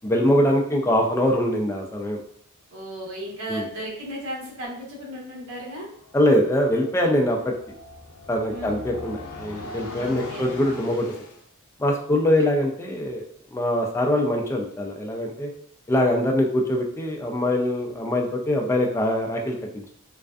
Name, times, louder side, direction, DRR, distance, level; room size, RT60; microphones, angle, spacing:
voice 1, 0.0-2.2 3.5-3.6 6.1-7.5 8.3-11.1 11.8-13.2 13.5-15.5 15.9-19.9, left 1 dB, 10° left, 1 dB, 0.3 m, -23 dB
voice 2, 2.7-5.9 8.5-8.7 10.0-10.5 12.4-12.5, equal, 75° right, -4 dB, 0.9 m, -35 dB
sound 1, 6.0-11.4, left 3 dB, 90° left, 0.5 m, -40 dB
2.4 x 2.3 x 2.2 m, 0.63 s
head